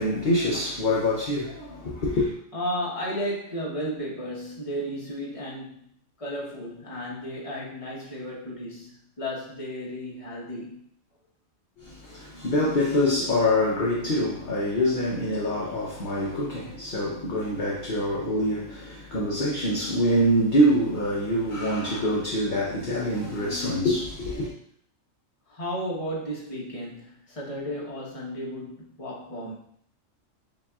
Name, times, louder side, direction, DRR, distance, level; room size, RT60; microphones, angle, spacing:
voice 1, 0.0-2.3 11.8-24.5, equal, 45° left, 0.8 m, -25 dB
voice 2, 2.5-5.9 6.2-10.8 25.5-29.5, equal, 25° left, 1.1 m, -34 dB
7.1 x 2.7 x 2.3 m
omnidirectional pair, 1.3 m